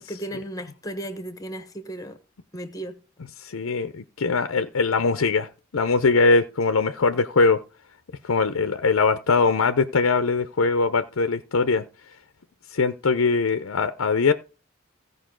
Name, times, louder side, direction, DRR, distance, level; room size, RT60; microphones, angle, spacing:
voice 1, 0.0-2.2 2.5-3.0, right 1 dB, 15° left, 1.2 m, -35 dB
voice 2, 3.4-7.6 8.2-11.8 12.7-14.3, left 4 dB, 85° left, 0.6 m, -21 dB
16.0 x 5.3 x 3.8 m
head